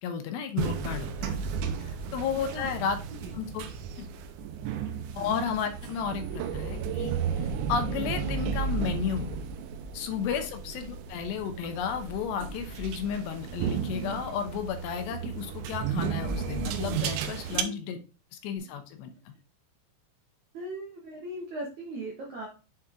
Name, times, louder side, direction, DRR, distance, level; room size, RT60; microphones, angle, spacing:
voice 1, 0.0-1.4 1.8-3.0 3.3-3.6 4.0-4.1 5.2-7.1 7.7-9.4 9.9-18.0 18.3-19.1, left 7 dB, 75° left, 7 dB, 2.8 m, -33 dB
sound 1, 0.6-17.6, right 7 dB, 90° right, 3.0 m, -33 dB
voice 2, 17.4-17.7 18.6-18.7 20.5-22.5, right 1 dB, 65° right, -2 dB, 1.9 m, -39 dB
7.6 x 4.3 x 3.6 m, 0.33 s
omnidirectional pair, 5.2 m